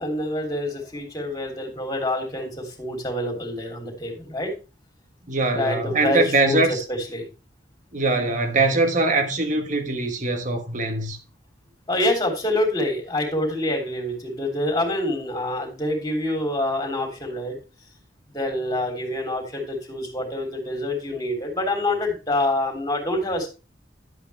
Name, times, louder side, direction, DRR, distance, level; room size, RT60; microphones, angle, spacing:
voice 1, 0.0-4.5 5.5-7.3 11.9-17.6 18.3-23.5, left 1 dB, 20° left, 3.2 m, -26 dB
voice 2, 5.3-6.8 7.9-11.2, right 2 dB, 45° right, 1.5 m, -22 dB
11.0 x 8.3 x 3.4 m
head